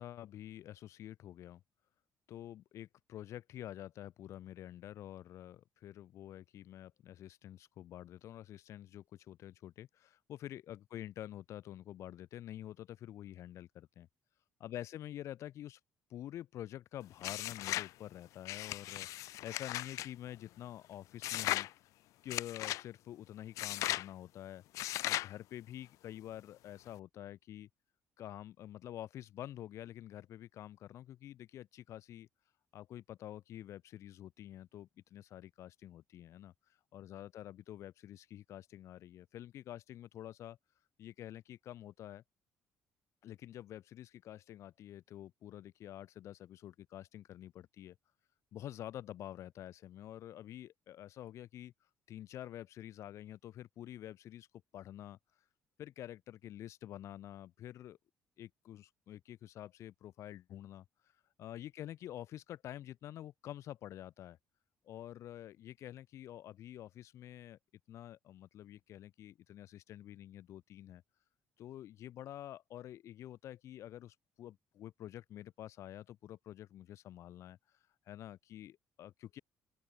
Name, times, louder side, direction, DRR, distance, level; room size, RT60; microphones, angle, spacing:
voice 1, 0.0-1.6 2.3-14.1 14.6-15.8 16.1-21.8 22.2-24.6 25.0-27.7 28.2-32.3 32.7-40.6 41.0-42.2 43.2-48.0 48.5-54.5 54.7-55.4 55.8-58.0 58.4-64.4 64.8-67.6 67.9-71.0 71.6-79.4, left 12 dB, 65° left, 4.8 m, -48 dB
sound 1, 17.2-17.9 18.4-20.1 21.2-21.7 22.3-22.8 23.6-24.1 24.7-25.3, left 16 dB, 80° left, 0.6 m, -37 dB
open air
cardioid pair, 130°, 5 cm